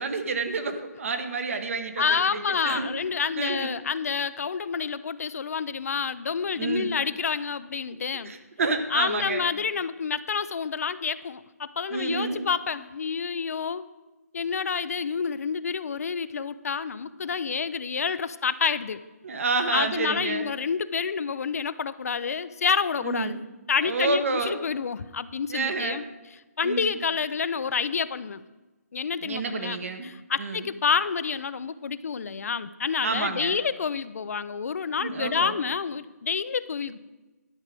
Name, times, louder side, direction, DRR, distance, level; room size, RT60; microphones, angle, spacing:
voice 1, 0.0-3.0 3.4-3.7 6.6-6.9 8.2-9.5 11.9-12.5 19.2-20.5 23.0-23.4 23.8-24.6 25.5-26.0 26.6-26.9 29.2-30.1 30.4-30.6 33.0-33.6 35.0-35.6, right 3 dB, 55° right, 8 dB, 1.2 m, -29 dB
voice 2, 2.0-8.3 8.9-13.9 14.3-19.0 19.7-23.4 23.7-26.0 26.6-28.4 28.9-37.0, left 6 dB, 65° left, 14 dB, 0.5 m, -28 dB
11.5 x 4.9 x 7.5 m, 1.1 s
hypercardioid pair, 165°, 9 cm